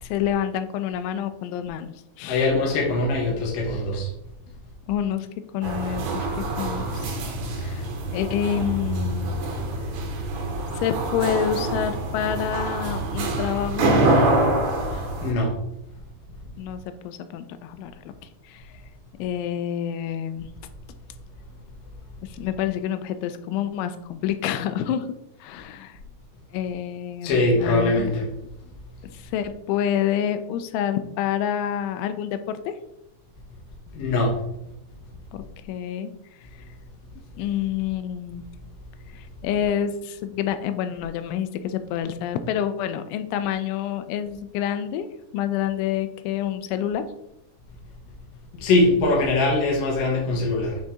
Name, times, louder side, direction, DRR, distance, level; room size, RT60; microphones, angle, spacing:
voice 1, 0.0-2.5 4.9-5.3 5.5-6.3 6.6-7.2 7.6-7.9 8.1-9.3 10.7-14.4 16.6-18.1 18.4-18.6 19.2-20.5 22.2-25.1 25.4-26.0 26.5-28.1 29.1-32.8 35.3-36.1 37.4-38.4 39.1-45.1 45.3-47.0, left 9 dB, 85° left, 9 dB, 3.0 m, -28 dB
voice 2, 2.3-4.1 14.9-15.5 27.2-28.2 33.9-34.4 48.6-50.8, left 2 dB, 65° left, -3 dB, 2.4 m, -22 dB
sound 1, 5.6-15.3, right 2 dB, 75° right, 3.0 m, -25 dB
9.0 x 4.0 x 3.6 m, 0.82 s
omnidirectional pair, 5.5 m